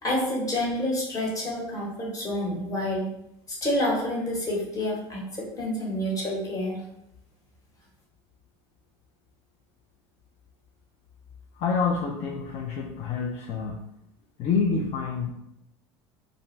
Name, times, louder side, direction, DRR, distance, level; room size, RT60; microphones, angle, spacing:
voice 1, 0.0-3.1 3.5-6.8, left 1 dB, 25° left, -3 dB, 1.0 m, -28 dB
voice 2, 11.5-13.9 14.4-15.3, left 5 dB, 50° left, -1 dB, 0.4 m, -27 dB
2.5 x 2.2 x 3.1 m, 0.82 s
supercardioid pair, 105°, 13 cm